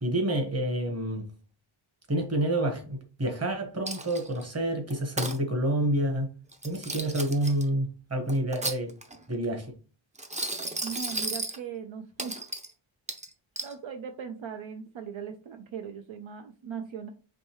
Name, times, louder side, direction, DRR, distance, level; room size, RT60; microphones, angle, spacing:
voice 1, 0.0-1.3 2.1-6.3 6.6-8.9 9.3-9.7, right 1 dB, 30° right, 1.3 m, -28 dB
Coin (dropping), 3.9-4.4 4.9-5.4 6.5-7.6 8.3-9.2 10.2-11.6 12.2-12.7 13.1-13.7, right 2 dB, 15° right, 0.6 m, -34 dB
voice 2, 10.8-12.4 13.6-17.1, right 7 dB, 70° right, 0.6 m, -39 dB
5.1 x 3.1 x 3.0 m
wide cardioid pair, 140°, 49 cm